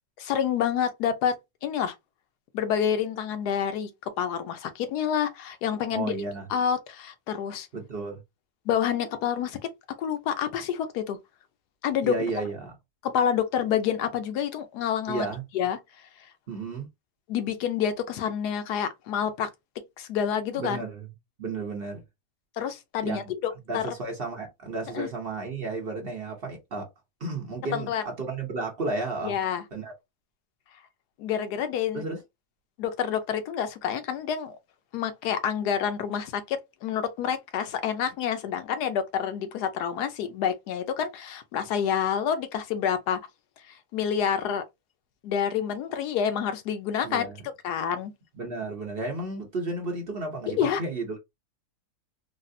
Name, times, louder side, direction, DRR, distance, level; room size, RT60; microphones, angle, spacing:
voice 1, 0.2-1.4 1.6-1.9 2.5-6.1 6.5-7.7 8.7-9.6 10.0-11.2 11.8-12.1 13.0-15.3 15.5-15.8 17.3-19.5 20.0-20.8 22.6-23.8 24.9-25.1 27.7-28.0 29.2-29.6 31.2-32.0 32.8-34.6 34.9-43.2 43.7-44.6 45.2-47.3 47.6-48.1 50.6-50.8, left 8 dB, 80° left, 1.2 m, -28 dB
voice 2, 5.9-6.5 7.7-8.2 12.0-12.7 15.1-15.4 16.5-16.9 20.5-21.1 21.4-22.0 23.0-23.3 23.7-26.9 27.2-29.4 29.7-29.9 31.9-32.2 47.0-47.4 48.3-51.2, right 3 dB, 45° right, 0.9 m, -33 dB
4.1 x 2.0 x 2.6 m
omnidirectional pair, 1.7 m